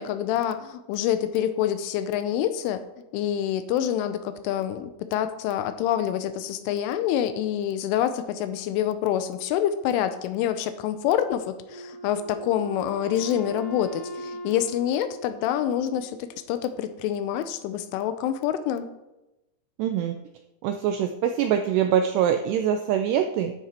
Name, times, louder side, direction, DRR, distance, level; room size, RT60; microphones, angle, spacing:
voice 1, 0.0-2.9 3.1-18.9, left 10 dB, 85° left, 11 dB, 3.3 m, -27 dB
Wind instrument woodwind instrument, 11.7-16.2, equal, 50° right, 1.0 m, -39 dB
voice 2, 19.8-20.1 20.6-23.5, right 9 dB, 85° right, 6 dB, 2.4 m, -24 dB
12.5 x 10.0 x 4.4 m, 0.98 s
omnidirectional pair, 5.6 m